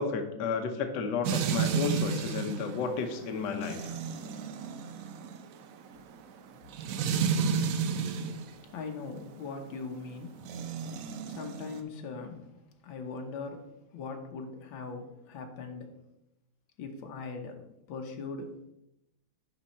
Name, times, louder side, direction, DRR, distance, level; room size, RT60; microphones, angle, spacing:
voice 1, 0.0-4.0, left 5 dB, 65° left, 1.4 m, -32 dB
sound 1, 1.2-8.5 10.4-11.8, right 6 dB, 75° right, 0.7 m, -32 dB
voice 2, 8.7-10.4 11.2-12.6 12.8-15.9 16.8-18.5, left 4 dB, 85° left, 1.7 m, -40 dB
10.5 x 4.0 x 4.2 m
omnidirectional pair, 2.1 m